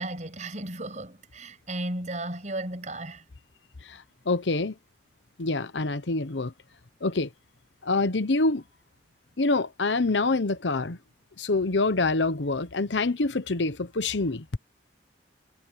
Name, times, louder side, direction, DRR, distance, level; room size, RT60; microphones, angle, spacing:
voice 1, 0.0-3.2, right 1 dB, 40° right, 7.4 m, -34 dB
voice 2, 3.9-4.7 5.4-6.5 7.0-7.3 7.8-8.6 9.4-11.0 11.4-14.6, left 3 dB, 85° left, 1.0 m, -26 dB
head